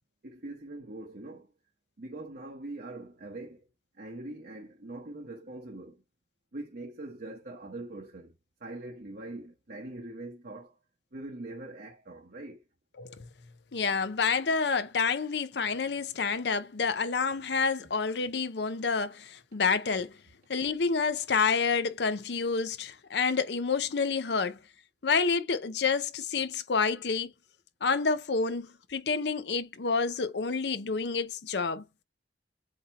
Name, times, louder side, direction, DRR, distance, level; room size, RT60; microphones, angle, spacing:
voice 1, 0.2-1.5 2.0-3.7 3.9-6.0 6.5-8.3 8.6-10.7 11.1-12.6, right 2 dB, 55° right, 0.9 m, -42 dB
voice 2, 13.7-20.1 20.5-24.6 25.0-27.3 27.8-31.8, left 5 dB, 70° left, 0.6 m, -28 dB
7.8 x 2.9 x 4.3 m
head